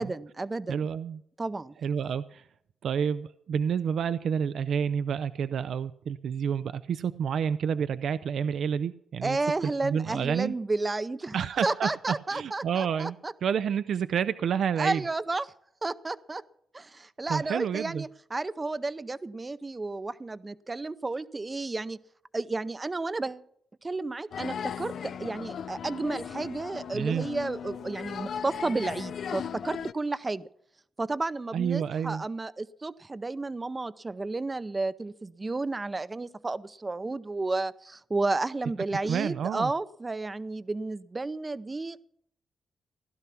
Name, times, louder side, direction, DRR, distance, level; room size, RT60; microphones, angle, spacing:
voice 1, 0.0-0.9 1.4-1.7 9.2-11.4 11.6-13.3 14.8-15.5 15.8-16.4 16.7-22.0 22.3-23.4 23.8-30.5 31.0-42.1, right 3 dB, 20° right, 15 dB, 0.6 m, -32 dB
voice 2, 0.7-1.2 1.8-2.4 2.8-9.4 9.8-10.5 11.3-11.9 12.3-13.2 13.4-15.0 17.3-18.0 26.9-27.3 31.5-32.2 39.0-39.7, right 7 dB, 65° right, 13 dB, 0.5 m, -29 dB
sound 1, 24.3-29.9, left 7 dB, 60° left, 0.5 m, -37 dB
16.0 x 12.0 x 5.8 m, 0.69 s
cardioid pair, 115°, 0 cm